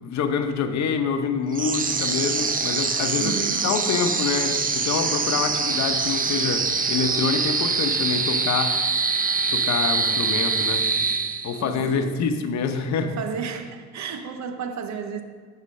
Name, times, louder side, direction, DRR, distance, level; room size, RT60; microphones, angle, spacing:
voice 1, 0.0-3.3 3.6-8.8 9.5-10.9 11.4-13.1, left 5 dB, 65° left, 0.8 m, -26 dB
sound 1, 1.5-11.8, right 4 dB, 30° right, 0.6 m, -24 dB
voice 2, 3.2-3.7 5.2-5.4 11.6-12.3 13.0-15.2, right 6 dB, 65° right, 0.9 m, -33 dB
8.3 x 4.3 x 6.5 m
cardioid pair, 90°, 30 cm